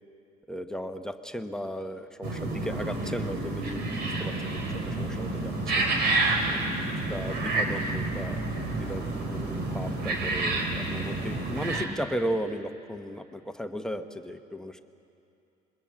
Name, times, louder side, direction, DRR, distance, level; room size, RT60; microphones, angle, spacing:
voice 1, 0.5-5.9 6.4-8.4 8.7-14.8, equal, 5° left, 6 dB, 1.0 m, -36 dB
sound 1, 2.2-11.8, right 2 dB, 75° right, 3.9 m, -29 dB
25.5 x 22.0 x 7.6 m, 2.7 s
cardioid pair, 110°, 17 cm